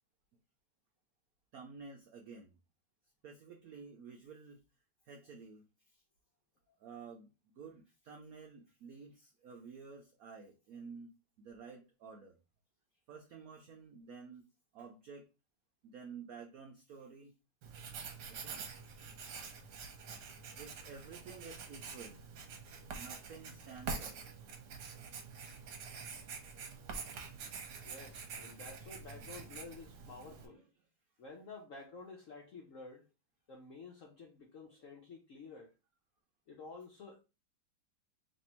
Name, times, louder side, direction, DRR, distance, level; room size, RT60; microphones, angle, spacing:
voice 1, 1.5-2.6 3.2-4.6 5.0-6.0 6.8-11.1 11.4-12.4 13.1-14.4 14.7-15.3 15.8-17.3 18.3-18.6 20.6-22.2 23.0-24.2 30.3-30.6, right 5 dB, 80° right, 0.8 m, -51 dB
Writing, 17.6-30.5, right 5 dB, 65° right, 1.2 m, -46 dB
voice 2, 27.8-30.6 31.2-33.1 33.5-35.7 36.5-37.2, left 3 dB, 70° left, 0.7 m, -51 dB
3.3 x 2.6 x 4.2 m
omnidirectional pair, 2.2 m